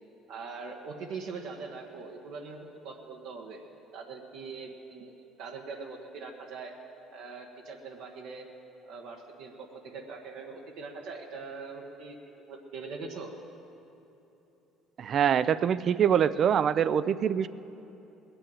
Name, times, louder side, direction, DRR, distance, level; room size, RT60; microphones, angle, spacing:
voice 1, 0.3-3.6 3.9-6.7 7.1-8.5 8.8-12.2 12.5-13.3, right 4 dB, 75° right, 0 dB, 1.3 m, -42 dB
voice 2, 15.0-17.5, right 8 dB, 50° right, 16 dB, 0.4 m, -24 dB
20.0 x 6.9 x 8.9 m, 3.0 s
supercardioid pair, 90°, 0 cm